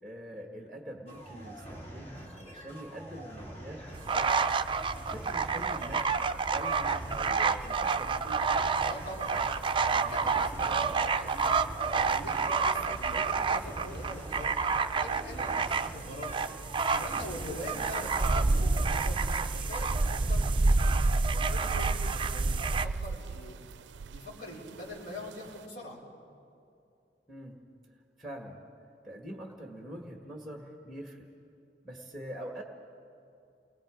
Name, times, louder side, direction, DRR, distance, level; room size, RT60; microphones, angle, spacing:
voice 1, 0.0-4.5 4.8-8.5 17.7-17.9 27.3-27.6 28.2-28.6 29.0-31.3 31.8-32.6, equal, ahead, 2 dB, 1.6 m, -44 dB
sound 1, 1.1-19.9, right 1 dB, 40° left, 3.1 m, -46 dB
sound 2, 3.9-22.9, right 4 dB, 30° right, 0.5 m, -29 dB
voice 2, 8.8-9.4 9.7-11.6 11.9-14.6 14.9-16.4 16.9-19.2 19.5-20.5 21.1-23.6 24.0-26.0, left 1 dB, 70° left, -5 dB, 4.8 m, -43 dB
sound 3, 19.9-25.7, right 4 dB, 90° right, 0.4 m, -41 dB
29.0 x 21.0 x 5.1 m, 2.6 s
head